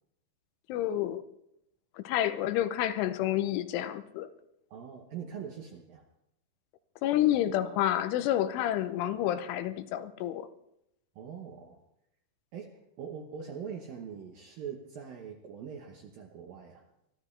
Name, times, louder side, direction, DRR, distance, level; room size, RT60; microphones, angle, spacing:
voice 1, 0.7-1.2 2.0-4.3 7.0-10.5, left 12 dB, 85° left, 3.2 m, -29 dB
voice 2, 4.7-6.0 11.2-11.8 12.5-16.9, right 7 dB, 70° right, 2.2 m, -42 dB
23.5 x 14.5 x 3.3 m
omnidirectional pair, 5.5 m